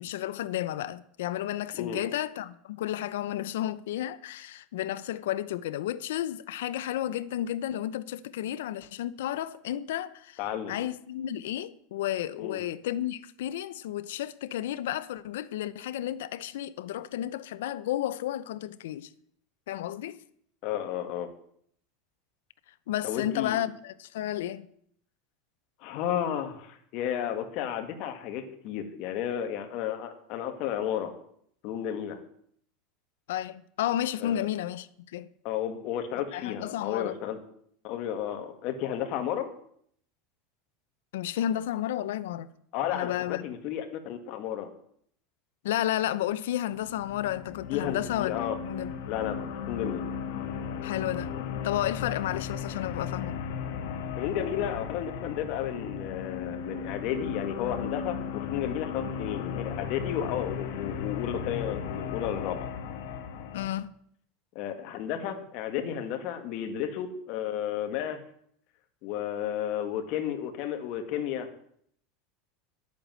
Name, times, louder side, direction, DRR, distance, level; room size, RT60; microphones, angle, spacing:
voice 1, 0.0-10.4 10.7-19.1 19.7-20.2 22.9-24.7 33.3-35.3 36.3-37.2 41.1-42.5 42.9-43.4 45.6-48.9 50.8-51.3 51.6-53.4 63.5-63.9, left 12 dB, 85° left, 0.8 m, -32 dB
voice 2, 10.4-10.8 12.4-12.6 20.6-21.3 23.0-23.6 25.8-31.1 31.6-32.2 34.2-34.5 35.4-37.4 37.8-39.5 42.7-44.7 47.7-48.6 49.1-50.0 54.1-62.6 64.6-68.2 69.0-71.5, left 10 dB, 50° left, 1.9 m, -32 dB
sound 1, 46.7-63.7, left 7 dB, 70° left, 1.7 m, -36 dB
11.5 x 8.5 x 7.7 m
supercardioid pair, 150°, 0 cm